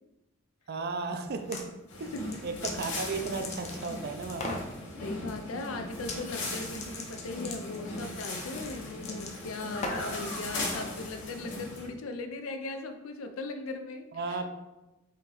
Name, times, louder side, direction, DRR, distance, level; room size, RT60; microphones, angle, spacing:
voice 1, 0.7-1.6 2.0-2.1 2.4-4.6 14.1-14.5, right 4 dB, 50° right, 7 dB, 0.4 m, -34 dB
sound 1, 1.3-1.7 2.1-4.0 4.3-4.7 6.0-6.2 6.4-10.2, left 2 dB, 35° left, 0.6 m, -39 dB
sound 2, 1.9-11.9, left 2 dB, 60° left, 1.0 m, -38 dB
voice 2, 5.0-14.5, left 3 dB, 75° left, 6 dB, 0.5 m, -39 dB
4.4 x 2.9 x 3.8 m, 1.0 s
head